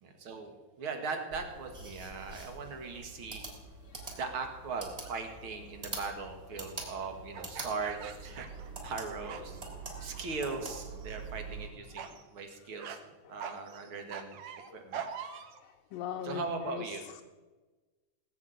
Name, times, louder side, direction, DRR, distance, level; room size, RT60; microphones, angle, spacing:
voice 1, 0.0-3.4 4.1-9.6 10.0-13.0 13.3-14.4 14.7-15.1 16.2-17.1, right 4 dB, 45° right, 5 dB, 1.9 m, -39 dB
sound 1, 1.3-11.7, right 3 dB, 15° right, 3.2 m, -45 dB
voice 2, 3.8-4.2 9.8-10.2 12.0-12.3 13.2-13.3 14.7-14.9 15.5-17.2, left 9 dB, 80° left, 3 dB, 2.4 m, -43 dB
sound 2, 5.0-5.3 7.3-9.0 9.2-9.7 10.1-10.6 11.0-11.3 12.0-12.2 12.8-13.0 13.4-15.6, right 7 dB, 65° right, 1.9 m, -43 dB
18.0 x 7.2 x 9.2 m, 1.2 s
omnidirectional pair, 4.2 m